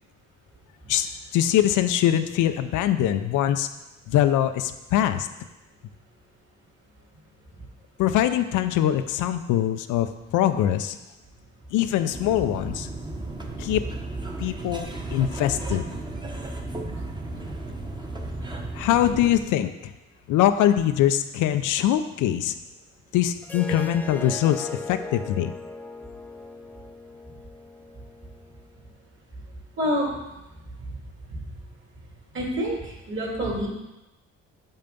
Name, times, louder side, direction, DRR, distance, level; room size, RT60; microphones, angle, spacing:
voice 1, 0.9-3.7 4.1-5.3 8.0-11.0 11.7-12.9 13.6-13.8 14.4-15.9 18.7-19.9 20.3-22.5 23.1-25.5, left 11 dB, 90° left, 10 dB, 0.5 m, -23 dB
sound 1, 12.1-19.4, right 2 dB, 15° right, 1.0 m, -34 dB
Harp, 23.4-28.6, left 2 dB, 5° left, 0.5 m, -38 dB
voice 2, 29.8-30.1 31.3-31.4 32.3-33.7, equal, 40° right, -2 dB, 2.3 m, -27 dB
5.7 x 5.5 x 5.2 m, 0.99 s
cardioid pair, 90°, 30 cm